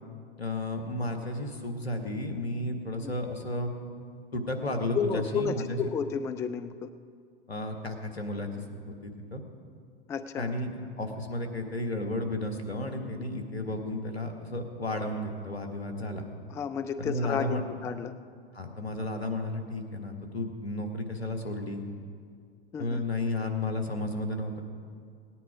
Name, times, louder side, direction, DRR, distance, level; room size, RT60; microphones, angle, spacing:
voice 1, 0.4-3.7 4.3-5.9 7.5-8.5 9.0-9.4 10.4-16.2 17.0-17.6 18.5-21.8 22.8-24.6, left 1 dB, 85° left, 4 dB, 1.7 m, -33 dB
voice 2, 4.9-6.9 10.1-10.5 16.5-18.1 22.7-23.0, left 6 dB, 10° left, 11 dB, 0.3 m, -32 dB
18.5 x 9.9 x 4.9 m, 2.1 s
figure-of-eight pair, 95°, 30 cm